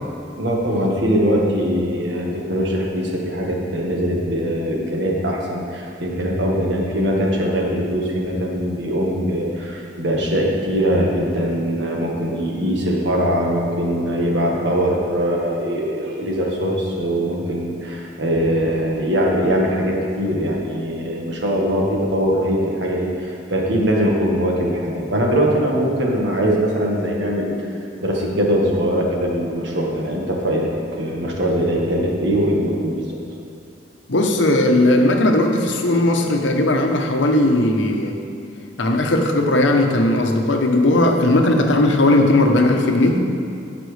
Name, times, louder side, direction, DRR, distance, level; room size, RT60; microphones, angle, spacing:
voice 1, 0.4-27.5 28.0-33.1, equal, 70° right, -2 dB, 1.6 m, -21 dB
voice 2, 34.1-38.2 38.8-43.2, left 1 dB, 80° left, 3 dB, 0.9 m, -17 dB
15.5 x 6.0 x 3.4 m, 2.5 s
head